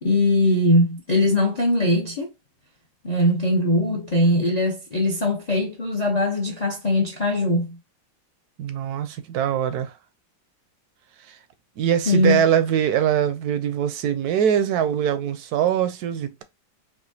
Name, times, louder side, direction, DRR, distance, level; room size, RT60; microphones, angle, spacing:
voice 1, 0.0-2.3 3.0-7.8 12.1-12.4, left 1 dB, 60° left, 0.4 m, -21 dB
voice 2, 8.6-9.9 11.2-11.4 11.8-16.4, right 9 dB, 70° right, 0.9 m, -22 dB
4.9 x 2.2 x 2.7 m
omnidirectional pair, 2.0 m